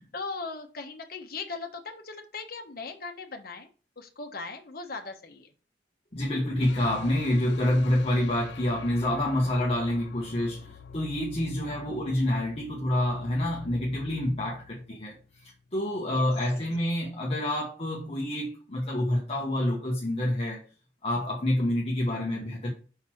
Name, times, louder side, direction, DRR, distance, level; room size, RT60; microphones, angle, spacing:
voice 1, 0.0-3.7 4.0-5.5 11.6-12.0 16.1-16.2 22.2-22.5, left 4 dB, 55° left, 1.1 m, -39 dB
voice 2, 6.1-20.7 21.0-22.7, left 1 dB, 35° left, 1.2 m, -28 dB
sound 1, 6.6-15.7, left 5 dB, 85° left, 0.5 m, -45 dB
5.7 x 4.1 x 6.1 m
head